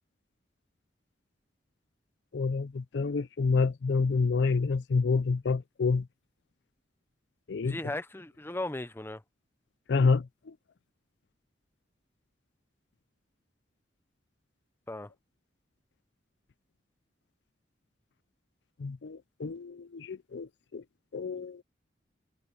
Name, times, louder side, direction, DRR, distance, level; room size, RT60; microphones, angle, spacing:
voice 1, 2.3-6.1 7.5-7.8 9.9-10.5 18.8-20.8 21.1-21.6, left 4 dB, 65° left, 0.5 m, -28 dB
voice 2, 7.6-9.2 14.9-15.1, left 1 dB, 10° left, 0.7 m, -36 dB
head